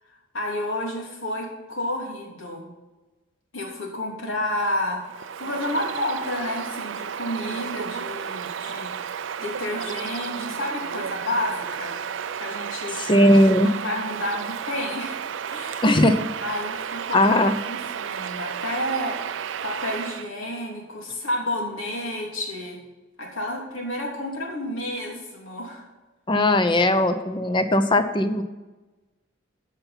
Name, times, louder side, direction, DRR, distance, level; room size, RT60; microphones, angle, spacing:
voice 1, 0.3-2.6 3.5-5.0 5.4-8.9 9.4-12.0 12.3-13.0 13.6-16.0 16.4-17.2 17.7-22.8 23.2-25.8, left 1 dB, 80° left, -1 dB, 3.1 m, -30 dB
Bird vocalization bird call bird song, 5.0-20.3, right 7 dB, 65° right, 0.4 m, -32 dB
voice 2, 13.0-13.7 15.8-16.2 17.1-17.5 26.3-28.4, left 1 dB, 25° left, 9 dB, 0.7 m, -18 dB
14.0 x 5.7 x 5.8 m, 1.2 s
head